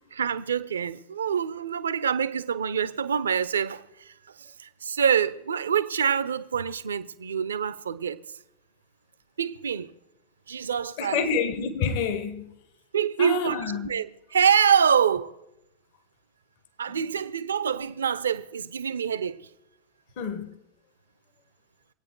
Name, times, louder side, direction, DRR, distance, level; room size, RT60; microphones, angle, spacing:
voice 1, 0.1-8.2 9.4-9.9 10.5-11.2 12.9-14.1 14.3-15.3 16.8-19.4, right 7 dB, 70° right, 0.7 m, -26 dB
voice 2, 11.0-12.5 13.2-13.9 16.9-17.3 20.2-20.6, left 5 dB, 50° left, 1.3 m, -28 dB
25.0 x 8.9 x 4.5 m
figure-of-eight pair, 90°, 0 cm